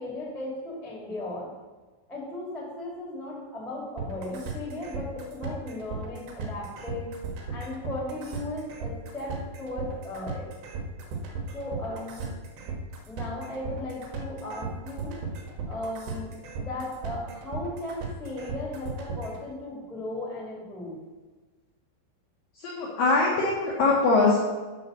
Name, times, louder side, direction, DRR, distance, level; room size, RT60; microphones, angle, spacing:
voice 1, 0.0-1.5 2.1-7.1 7.5-10.5 11.5-12.2 13.1-15.2 15.7-21.0, left 1 dB, ahead, -4 dB, 0.7 m, -36 dB
sound 1, 4.0-19.4, right 5 dB, 70° right, 2.9 m, -36 dB
voice 2, 22.6-24.4, left 3 dB, 75° left, -5 dB, 2.1 m, -22 dB
7.8 x 5.4 x 6.5 m, 1.3 s
omnidirectional pair, 5.6 m